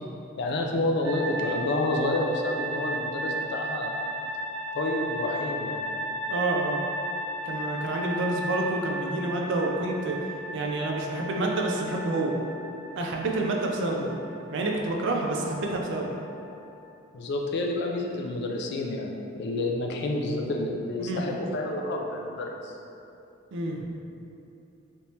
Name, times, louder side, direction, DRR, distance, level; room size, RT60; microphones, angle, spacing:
voice 1, 0.4-4.0 4.7-5.8 17.1-22.7, left 2 dB, 55° left, 1 dB, 0.4 m, -29 dB
sound 1, 1.0-16.8, right 1 dB, 5° right, 0.9 m, -35 dB
voice 2, 6.3-6.8 7.4-10.2 10.5-12.3 12.9-14.1 14.5-16.1 21.0-21.3 23.5-23.8, right 2 dB, 60° right, 0 dB, 0.4 m, -28 dB
3.4 x 2.9 x 2.7 m, 2.7 s
head